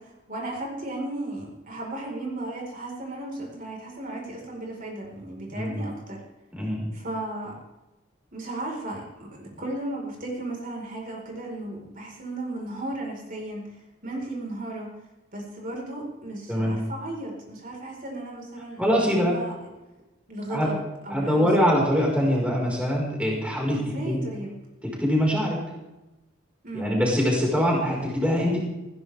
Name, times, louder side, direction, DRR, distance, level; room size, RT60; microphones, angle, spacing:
voice 1, 0.0-6.2 6.9-7.5 8.3-13.6 14.0-14.9 15.3-18.8 19.1-19.5 20.3-21.6 23.7-24.6 26.6-26.9, right 1 dB, 45° right, -1 dB, 4.6 m, -35 dB
voice 2, 5.5-5.9 6.5-6.9 16.5-16.8 18.8-19.4 20.5-20.7 21.1-24.2 24.8-25.6 26.7-28.6, equal, 5° right, -3 dB, 4.8 m, -23 dB
20.0 x 17.0 x 3.5 m, 1.0 s
head